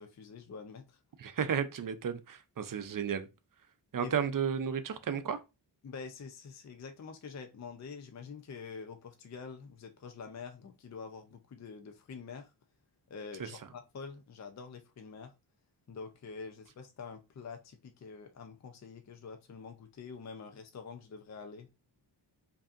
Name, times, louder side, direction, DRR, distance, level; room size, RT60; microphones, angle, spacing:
voice 1, 0.0-1.0 4.0-4.1 5.8-12.5 13.1-15.3 15.9-21.7, left 5 dB, 40° left, 0.5 m, -46 dB
voice 2, 1.2-3.3 3.9-5.4 13.4-13.5, right 7 dB, 50° right, 0.5 m, -33 dB
5.0 x 2.7 x 2.5 m
wide cardioid pair, 120°, 43 cm